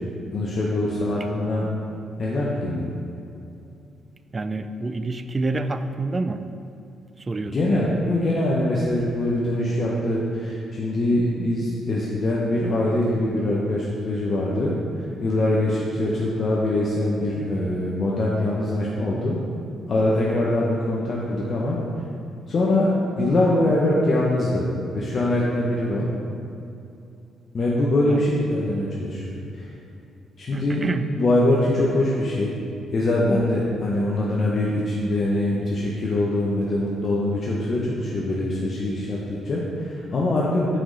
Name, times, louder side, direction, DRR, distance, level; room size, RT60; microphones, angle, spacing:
voice 1, 0.3-1.7 2.2-2.9 7.5-14.7 15.2-19.3 19.9-21.8 22.5-22.9 23.2-24.7 24.9-26.1 27.5-29.7 30.4-30.9 31.2-32.5 32.9-40.8, left 1 dB, 45° left, -5 dB, 0.8 m, -23 dB
voice 2, 4.3-6.4 7.3-7.6 28.1-28.2 30.5-31.0, right 2 dB, 30° right, 10 dB, 0.3 m, -27 dB
6.0 x 4.8 x 3.9 m, 2.6 s
cardioid pair, 90°, 0 cm